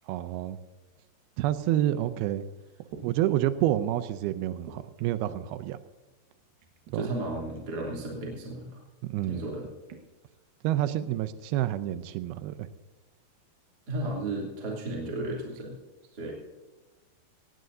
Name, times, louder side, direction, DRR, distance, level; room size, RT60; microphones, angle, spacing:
voice 1, 0.1-0.6 1.4-2.4 3.0-5.8 6.9-7.1 9.0-9.5 10.6-12.7, right 13 dB, 90° right, 11 dB, 2.2 m, -28 dB
sound 1, 2.9-3.1 4.6-5.3 6.6-7.0 7.5-7.7 9.6-10.1 10.9-11.0, right 6 dB, 65° right, 2.9 m, -47 dB
voice 2, 6.9-8.8 9.2-9.6 13.9-15.8 16.1-16.3, right 2 dB, 25° right, -3 dB, 2.9 m, -34 dB
18.5 x 17.0 x 2.7 m, 1.2 s
omnidirectional pair, 5.1 m